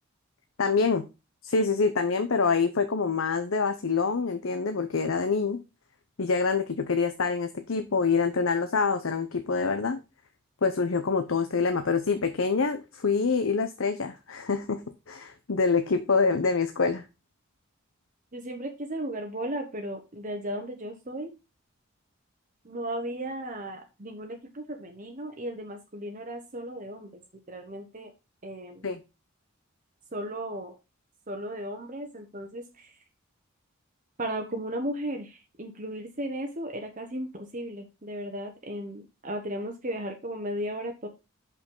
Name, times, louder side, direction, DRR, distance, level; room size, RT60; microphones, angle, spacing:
voice 1, 0.6-1.1 1.4-5.6 6.2-10.0 10.6-14.8 15.1-17.1 28.8-29.0, left 4 dB, 65° left, 8 dB, 0.8 m, -26 dB
voice 2, 18.3-21.3 22.6-27.2 27.5-28.1 28.4-28.9 30.1-30.7 31.3-32.9 34.2-41.1, right 1 dB, 35° right, 4 dB, 1.1 m, -35 dB
6.4 x 5.7 x 5.4 m, 0.27 s
head